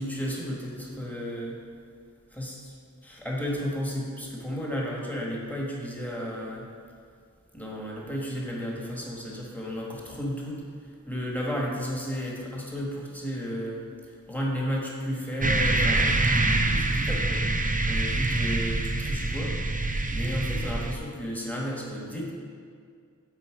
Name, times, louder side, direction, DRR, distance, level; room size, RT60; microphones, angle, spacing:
voice 1, 0.0-1.6 2.3-2.7 3.0-6.7 7.5-22.3, equal, 5° left, -3 dB, 1.4 m, -33 dB
sound 1, 15.4-21.0, right 2 dB, 25° right, 0.5 m, -25 dB
8.2 x 4.1 x 4.7 m, 2.2 s
wide cardioid pair, 45°, 32 cm